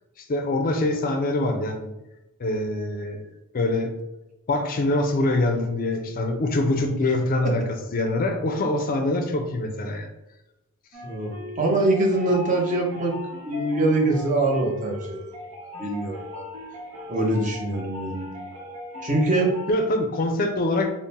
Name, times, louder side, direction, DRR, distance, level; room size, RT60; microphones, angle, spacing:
voice 1, 0.3-1.9 2.4-3.2 3.5-3.9 4.5-7.6 7.9-10.1 19.7-20.9, left 2 dB, 40° left, 5 dB, 0.4 m, -24 dB
sound 1, 10.9-19.7, left 2 dB, 75° right, 0.9 m, -38 dB
voice 2, 11.0-13.1 13.4-15.2 15.8-16.4 17.1-18.3 19.0-19.6, right 2 dB, 35° right, 0 dB, 0.7 m, -23 dB
3.6 x 2.0 x 4.0 m, 0.94 s
head